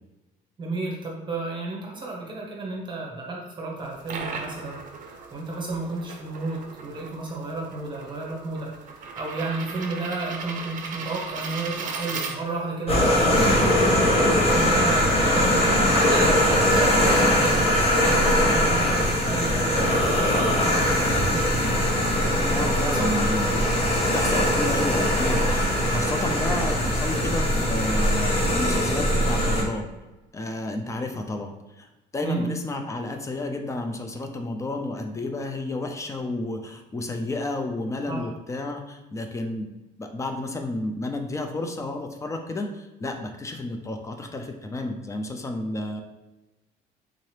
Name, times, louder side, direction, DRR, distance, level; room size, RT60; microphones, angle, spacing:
voice 1, 0.6-21.7 22.9-23.1 32.2-32.5 38.1-38.3, right 3 dB, 30° right, -2 dB, 0.9 m, -32 dB
sound 1, 3.8-12.8, right 5 dB, 50° right, 0.6 m, -37 dB
sound 2, 12.9-29.6, equal, 35° left, 1.0 m, -21 dB
voice 2, 22.4-23.7 24.0-29.9 30.3-31.9 32.1-39.7 40.0-46.0, left 2 dB, 20° left, 5 dB, 0.5 m, -31 dB
3.8 x 2.7 x 3.2 m, 1.0 s
cardioid pair, 110°, 17 cm